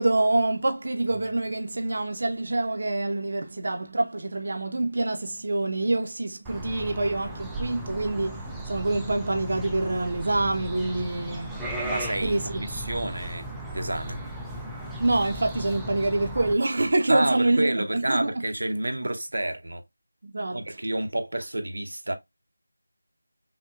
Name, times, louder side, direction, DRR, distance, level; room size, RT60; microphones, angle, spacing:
voice 1, 0.0-11.9 12.2-12.6 15.0-18.3 19.0-19.1 20.2-20.8, right 2 dB, 50° right, 0.6 m, -26 dB
sound 1, 6.4-16.5, right 1 dB, ahead, 0.3 m, -36 dB
voice 2, 11.8-14.2 17.1-19.8 20.5-22.1, right 1 dB, 85° right, 0.8 m, -29 dB
5.6 x 2.2 x 2.4 m
figure-of-eight pair, 175°, 0 cm